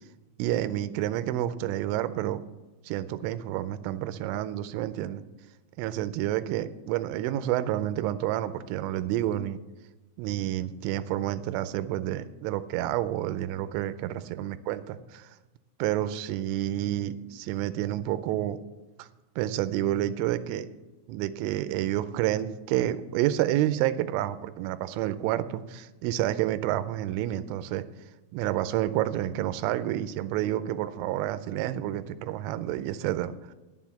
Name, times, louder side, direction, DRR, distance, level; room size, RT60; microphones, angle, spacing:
voice 1, 0.4-2.4 2.8-5.2 5.8-9.6 10.2-15.4 15.8-18.6 19.0-19.1 19.4-20.7 21.1-27.8 28.3-33.5, right 13 dB, 85° right, 12 dB, 3.0 m, -29 dB
9.5 x 7.5 x 7.0 m, 1.1 s
omnidirectional pair, 5.8 m